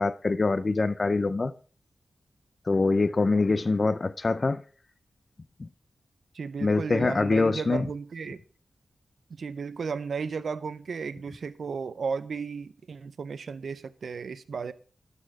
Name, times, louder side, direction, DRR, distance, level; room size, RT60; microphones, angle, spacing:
voice 1, 0.0-1.5 2.7-4.6 5.6-5.7 6.6-7.9, left 3 dB, 45° left, 0.4 m, -24 dB
voice 2, 6.3-8.4 9.4-14.7, right 5 dB, 75° right, 0.4 m, -34 dB
12.0 x 4.2 x 4.5 m
cardioid pair, 55°, 0 cm